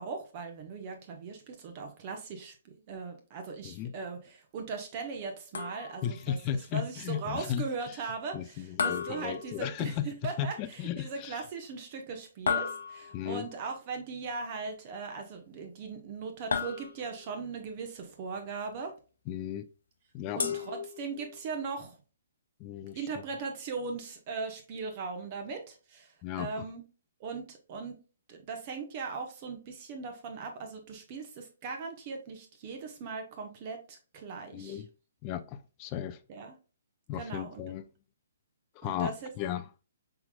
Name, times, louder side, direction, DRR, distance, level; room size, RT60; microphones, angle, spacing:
voice 1, 0.0-6.4 6.7-18.9 20.3-22.0 22.9-26.8 27.2-28.0 28.3-34.8 36.3-36.6 37.2-37.6 38.8-39.3, right 4 dB, 35° right, 0.9 m, -39 dB
voice 2, 3.6-3.9 6.0-8.0 8.3-10.1 10.4-11.4 13.1-13.5 19.3-19.7 20.1-20.4 22.6-23.1 26.2-26.6 34.5-34.9 35.2-36.2 37.1-37.8 38.8-39.7, left 10 dB, 25° left, 0.4 m, -35 dB
sound 1, 5.5-6.2 8.8-10.0 12.5-13.3 16.5-17.3 20.4-21.4, left 6 dB, 60° left, 0.8 m, -34 dB
5.8 x 3.8 x 2.2 m
figure-of-eight pair, 125°, 0 cm